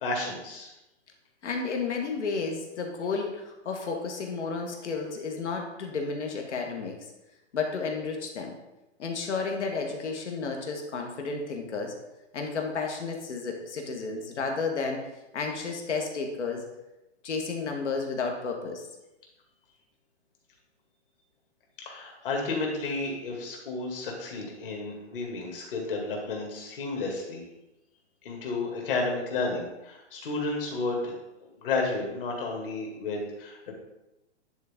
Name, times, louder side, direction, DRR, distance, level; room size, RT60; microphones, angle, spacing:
voice 1, 0.0-0.7 21.9-27.4 28.2-31.1 31.4-33.7, left 3 dB, 50° left, 0 dB, 2.3 m, -32 dB
voice 2, 1.4-7.0 7.5-8.6 9.0-11.9 12.3-15.1 15.3-16.6 17.2-18.8, left 4 dB, 75° left, 2 dB, 1.6 m, -32 dB
10.0 x 4.1 x 3.6 m, 0.96 s
hypercardioid pair, 155°, 35 cm